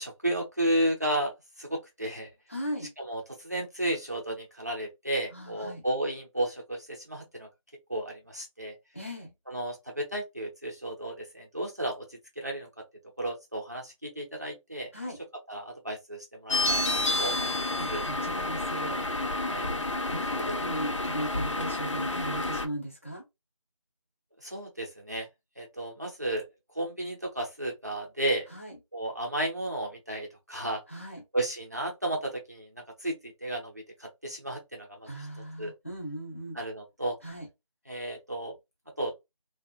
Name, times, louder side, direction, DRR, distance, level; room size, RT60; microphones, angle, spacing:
voice 1, 0.0-1.3 1.6-2.3 3.0-7.5 7.9-8.7 9.5-12.7 13.2-14.9 15.5-18.0 19.4-19.7 20.2-20.5 24.4-25.3 25.6-26.4 26.7-28.5 28.9-30.8 31.3-35.1 35.6-35.7 36.5-37.2 37.9-38.5 39.0-39.1, right 1 dB, 30° right, 0.6 m, -33 dB
voice 2, 2.5-2.9 5.3-5.8 8.9-9.3 14.9-15.2 17.8-19.0 20.1-23.2 28.5-28.7 30.9-31.2 35.1-36.6 37.2-37.5, right 1 dB, 25° left, 0.7 m, -37 dB
sound 1, 16.5-22.7, left 2 dB, 60° left, 0.6 m, -29 dB
2.8 x 2.2 x 2.3 m
figure-of-eight pair, 175°, 18 cm